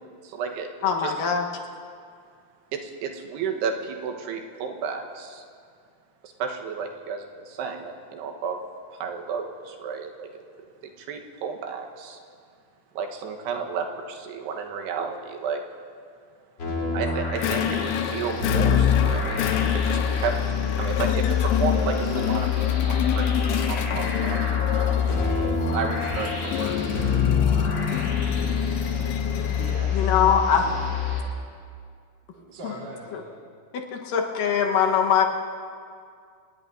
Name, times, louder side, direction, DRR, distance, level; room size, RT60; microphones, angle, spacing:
voice 1, 0.2-0.7 1.0-1.2 2.7-5.4 6.2-8.6 8.9-10.4 10.8-12.2 12.9-15.6 16.9-20.4 20.8-25.0 25.7-27.0, right 6 dB, 85° right, 3 dB, 3.2 m, -32 dB
voice 2, 0.8-1.4 29.9-30.6 32.6-32.7 33.1-33.2 33.7-35.3, left 7 dB, 70° left, 2 dB, 2.5 m, -22 dB
sound 1, 16.6-31.2, left 6 dB, 30° left, 2.6 m, -25 dB
sound 2, 17.4-29.9, left 10 dB, 85° left, 2.8 m, -29 dB
voice 3, 29.6-30.2 30.6-30.7 32.3-33.4, right 2 dB, 40° right, -7 dB, 3.8 m, -40 dB
28.5 x 18.5 x 2.6 m, 2.2 s
omnidirectional pair, 4.7 m